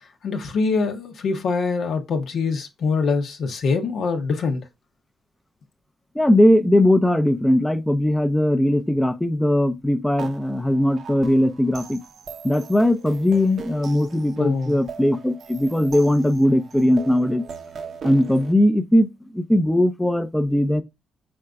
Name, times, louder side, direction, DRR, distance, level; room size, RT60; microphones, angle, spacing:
voice 1, 0.2-4.6 14.4-14.8, left 4 dB, 65° left, 0.8 m, -24 dB
voice 2, 6.1-12.0 12.4-17.4 18.0-19.1 19.3-20.8, left 1 dB, 5° left, 0.5 m, -19 dB
sound 1, 10.2-18.5, right 5 dB, 60° right, 0.7 m, -40 dB
4.4 x 3.8 x 2.2 m
cardioid pair, 90°, 0 cm